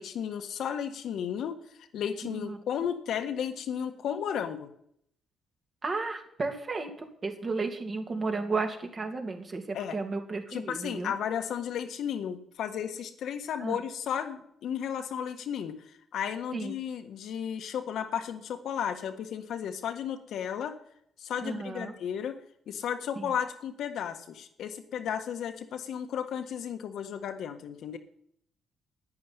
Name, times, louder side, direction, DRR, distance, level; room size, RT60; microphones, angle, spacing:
voice 1, 0.0-1.6 1.9-4.7 9.7-10.0 10.5-20.8 21.2-22.4 22.7-28.0, left 8 dB, 75° left, 6 dB, 1.6 m, -34 dB
voice 2, 2.2-2.6 5.8-11.1 13.6-13.8 16.5-16.7 21.4-21.9 23.1-23.3, right 3 dB, 35° right, 4 dB, 2.8 m, -33 dB
11.0 x 9.6 x 9.9 m, 0.70 s
cardioid pair, 90°, 0 cm